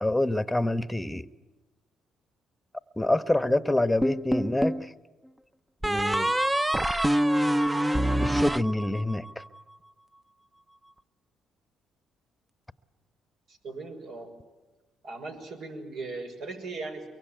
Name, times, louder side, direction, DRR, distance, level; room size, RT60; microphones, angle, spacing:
voice 1, 0.0-1.3 3.0-4.9 5.8-6.3 8.2-9.4, left 1 dB, 5° left, 13 dB, 1.1 m, -26 dB
sound 1, 4.0-4.9 5.8-9.3, right 1 dB, 15° right, 0.7 m, -25 dB
voice 2, 13.5-14.3 15.0-17.1, right 3 dB, 70° right, 4 dB, 6.1 m, -38 dB
23.5 x 23.5 x 9.2 m, 1.2 s
cardioid pair, 80°, 0 cm